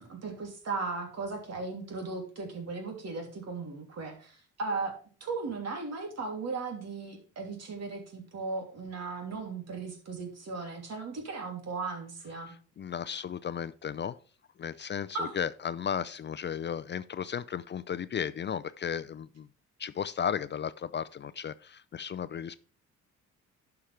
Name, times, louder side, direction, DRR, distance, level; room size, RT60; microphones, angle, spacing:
voice 1, 0.0-4.9 5.2-12.5 15.1-15.3, right 4 dB, 60° right, 3.0 m, -37 dB
voice 2, 12.5-14.2 14.6-19.5 19.8-22.6, left 8 dB, 40° left, 0.4 m, -35 dB
11.5 x 5.9 x 3.3 m
cardioid pair, 90°, 30 cm